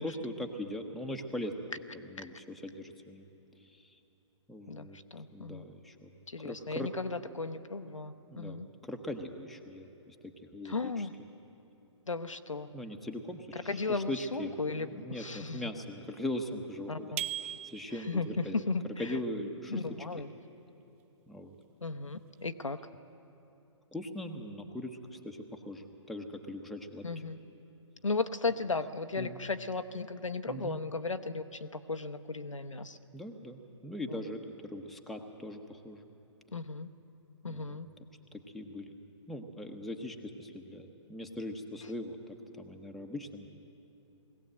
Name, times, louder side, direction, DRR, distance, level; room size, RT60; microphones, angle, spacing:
voice 1, 0.0-1.5 2.0-3.3 3.6-4.0 4.5-5.0 5.3-6.1 6.4-6.9 8.3-11.1 12.7-17.1 17.4-18.6 19.0-19.8 21.3-21.5 23.9-27.1 29.2-29.4 30.5-30.8 33.1-36.0 37.5-37.8 38.3-38.9 39.3-43.5, left 1 dB, ahead, 2 dB, 1.0 m, -40 dB
voice 2, 4.7-5.7 6.3-8.7 10.6-11.1 12.1-12.7 13.7-15.7 16.9-17.2 18.1-19.1 19.7-20.3 21.8-22.8 27.0-27.4 28.0-33.0 34.1-34.2 36.5-36.9 37.4-37.9, left 3 dB, 90° left, 9 dB, 0.9 m, -35 dB
sound 1, 17.2-18.3, right 12 dB, 25° right, 0.4 m, -38 dB
20.5 x 16.5 x 7.8 m, 2.9 s
figure-of-eight pair, 130°, 16 cm